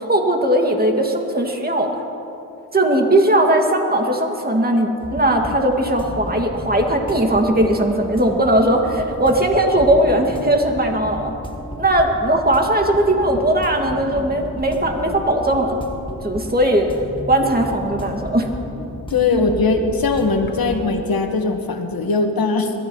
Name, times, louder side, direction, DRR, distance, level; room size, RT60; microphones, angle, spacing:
voice 1, 0.0-2.0 2.7-11.3 11.8-15.8 16.2-18.5, right 1 dB, 25° right, 2 dB, 2.1 m, -18 dB
sound 1, 5.0-20.9, left 1 dB, 15° left, 1.7 m, -33 dB
voice 2, 19.1-22.7, left 3 dB, 65° left, 5 dB, 1.6 m, -20 dB
22.0 x 13.0 x 3.1 m, 2.8 s
cardioid pair, 50°, 38 cm